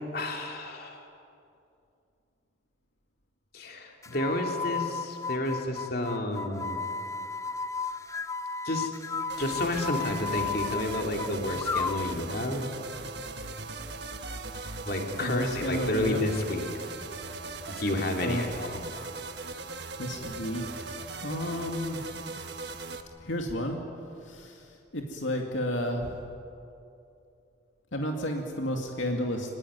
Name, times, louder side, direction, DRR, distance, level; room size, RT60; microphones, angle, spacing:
voice 1, 0.1-1.0 3.5-6.8 8.6-8.9 9.4-12.6 14.8-16.7 17.7-18.8, left 1 dB, 50° left, 2 dB, 3.0 m, -31 dB
sound 1, 4.0-12.2, left 4 dB, 15° left, 0.5 m, -34 dB
sound 2, 9.3-23.0, right 3 dB, 55° right, 1.5 m, -39 dB
voice 2, 15.2-16.2 18.2-18.5 20.0-20.9 21.2-22.0 23.2-23.8 24.2-24.7 24.9-26.2 27.9-29.5, equal, 75° left, 2 dB, 2.3 m, -31 dB
24.5 x 20.5 x 9.6 m, 2.6 s
head